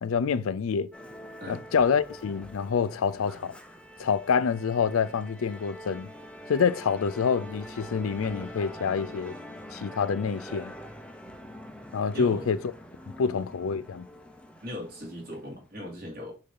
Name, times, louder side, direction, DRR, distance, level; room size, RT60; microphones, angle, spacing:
voice 1, 0.0-0.9 1.5-3.6 4.0-6.1 6.5-9.3 9.7-10.7 11.9-12.6 13.2-14.1, left 6 dB, 80° left, 0.4 m, -27 dB
Musical instrument, 0.9-15.6, equal, 5° left, 0.5 m, -44 dB
voice 2, 12.1-12.5 13.2-13.4 14.6-16.3, left 1 dB, 45° right, 2.3 m, -38 dB
6.5 x 2.7 x 5.5 m
head